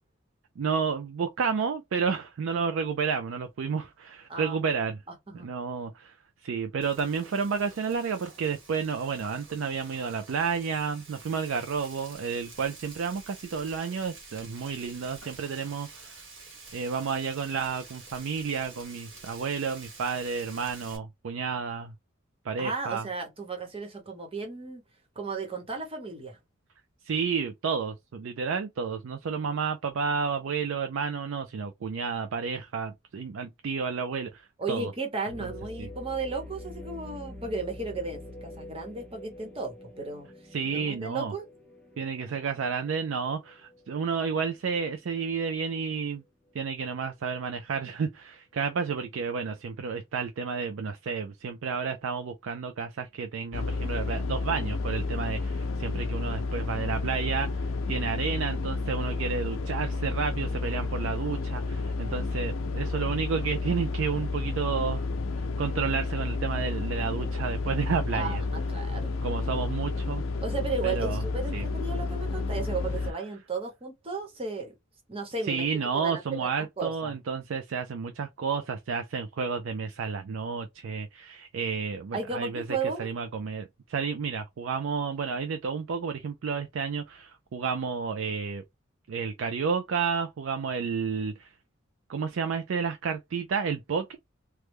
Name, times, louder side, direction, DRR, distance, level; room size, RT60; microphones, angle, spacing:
voice 1, 0.6-5.0 5.3-6.2 6.4-21.9 22.4-23.1 27.0-34.9 35.4-35.5 35.8-35.9 40.5-41.3 42.0-46.2 46.5-65.1 65.3-68.4 69.2-70.2 70.8-71.2 71.5-71.7 75.4-88.6 89.1-91.6 92.1-94.2, right 5 dB, 70° right, 0.4 m, -31 dB
Frying (food), 6.8-21.0, right 3 dB, 90° right, 1.5 m, -49 dB
voice 2, 22.6-24.8 25.1-26.4 34.6-40.3 40.7-41.5 68.1-69.2 70.4-74.7 75.1-76.5 76.8-77.1 82.1-83.1, right 4 dB, 30° right, 1.0 m, -34 dB
sound 1, 35.3-45.2 45.7-45.8 46.5-46.8, left 1 dB, 5° left, 0.6 m, -46 dB
sound 2, 53.5-73.1, left 3 dB, 80° left, 0.5 m, -31 dB
3.1 x 2.2 x 3.3 m
head